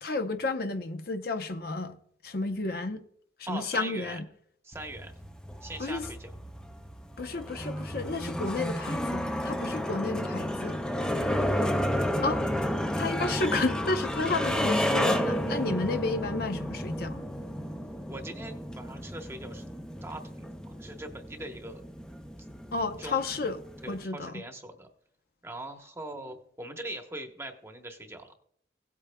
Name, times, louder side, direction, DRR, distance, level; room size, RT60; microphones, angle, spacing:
voice 1, 0.0-1.9 2.2-3.0 3.5-4.2 5.8-6.1 7.2-10.8 12.2-12.5 13.0-17.3 22.7-23.6 23.9-24.4, left 3 dB, 55° left, 0.7 m, -31 dB
voice 2, 3.5-4.2 4.6-5.1 5.6-6.3 18.1-19.6 20.0-21.8 23.0-23.2 23.8-24.9 25.4-28.3, right 1 dB, 15° right, 1.0 m, -41 dB
sound 1, 4.7-24.0, equal, 5° left, 0.5 m, -32 dB
17.5 x 8.4 x 2.2 m
head